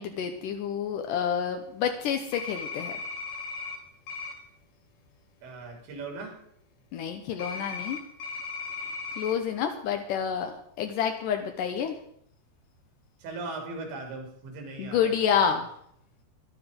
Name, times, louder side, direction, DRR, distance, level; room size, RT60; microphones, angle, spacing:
voice 1, 0.0-2.9 6.9-8.0 9.2-11.9 14.8-15.7, left 8 dB, 85° left, 5 dB, 1.8 m, -28 dB
sound 1, 2.3-3.8 4.1-4.3 7.4-9.3, left 4 dB, 55° left, 3.3 m, -36 dB
voice 2, 5.4-6.4 11.8-11.9 13.2-15.4, right 3 dB, 90° right, 2 dB, 5.6 m, -39 dB
14.5 x 12.0 x 5.2 m, 0.69 s
omnidirectional pair, 5.0 m